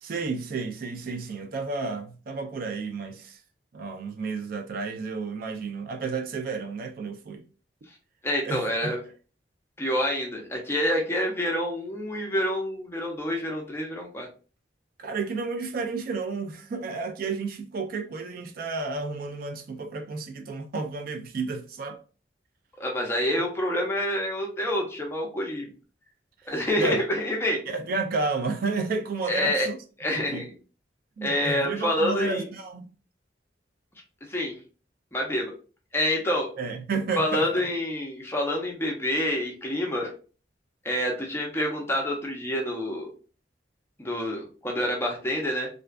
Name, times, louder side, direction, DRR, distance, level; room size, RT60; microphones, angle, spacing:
voice 1, 0.0-3.4 3.7-7.4 8.4-8.9 15.0-22.0 26.4-27.0 27.7-29.8 30.1-30.5 31.2-32.9 36.6-37.7, right 4 dB, 55° right, 0.3 m, -31 dB
voice 2, 8.2-9.0 9.8-14.3 22.8-25.7 26.5-27.6 29.3-29.7 30.0-30.5 31.2-32.4 34.3-34.5 35.1-35.5 35.9-36.5 37.2-40.1 40.8-43.1 44.0-45.7, left 1 dB, 15° left, 0.5 m, -27 dB
2.5 x 2.2 x 2.2 m
head